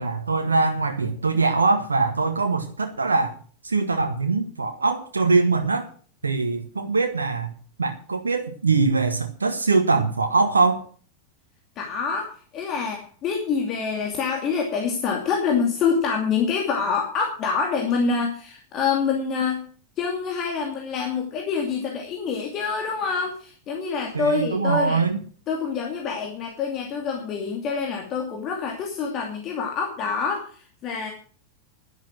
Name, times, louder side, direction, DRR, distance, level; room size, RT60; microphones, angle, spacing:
voice 1, 0.0-3.3 3.6-5.9 6.2-7.5 7.8-10.8 24.1-25.2, right 3 dB, 75° right, 5 dB, 1.2 m, -22 dB
voice 2, 11.8-19.6 20.0-25.0 25.5-31.1, left 5 dB, 35° left, 1 dB, 2.6 m, -26 dB
11.5 x 10.5 x 6.2 m, 0.43 s
figure-of-eight pair, 90°, 0 cm